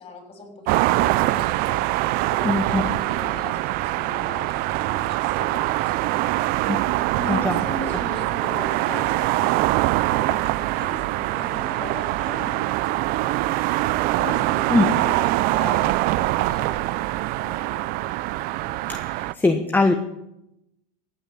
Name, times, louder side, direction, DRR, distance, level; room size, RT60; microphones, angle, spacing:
voice 1, 0.0-1.8 2.2-6.6 7.1-9.6 10.1-13.5 14.2-17.9, left 2 dB, 30° left, 3 dB, 6.3 m, -38 dB
sound 1, 0.7-19.3, right 18 dB, 45° right, 0.5 m, -23 dB
voice 2, 2.4-2.8 6.7-6.8 7.3-7.6 14.7-14.9 18.9-19.9, left 3 dB, 10° left, 5 dB, 1.1 m, -21 dB
15.0 x 9.5 x 7.4 m, 0.86 s
hypercardioid pair, 100°, 21 cm